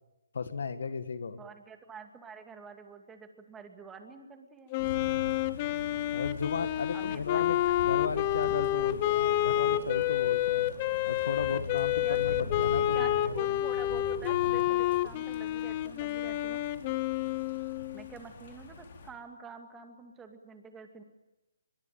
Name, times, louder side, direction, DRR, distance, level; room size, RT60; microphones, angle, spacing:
voice 1, 0.3-1.4 6.1-7.6 7.8-10.7 11.1-13.6, left 5 dB, 65° left, 11 dB, 1.7 m, -35 dB
voice 2, 1.4-4.7 6.9-7.7 12.0-12.5 12.7-16.6 17.9-21.0, right 5 dB, 10° right, 6 dB, 2.3 m, -47 dB
Wind instrument woodwind instrument, 4.7-18.1, left 14 dB, 25° left, 0.8 m, -29 dB
sound 1, 4.8-19.1, left 3 dB, 45° left, 4.6 m, -43 dB
23.0 x 22.5 x 9.1 m, 1.0 s
hypercardioid pair, 160°, 0 cm